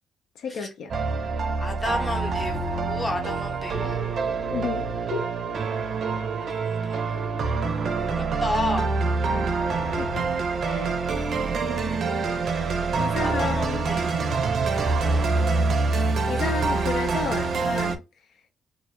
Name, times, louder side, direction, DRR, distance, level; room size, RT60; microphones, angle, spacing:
voice 1, 0.4-1.0 4.5-5.3 10.0-10.3 10.6-11.0 13.0-14.3 15.9-18.0, left 5 dB, 75° left, 0.4 m, -32 dB
sound 1, 0.9-18.0, right 4 dB, 55° right, 0.5 m, -26 dB
voice 2, 1.6-4.1 6.5-7.3 7.5-10.6 12.7-12.9 13.1-14.6 15.0-15.4, left 2 dB, 20° left, 0.8 m, -34 dB
2.3 x 2.1 x 2.9 m
cardioid pair, 115°, 0 cm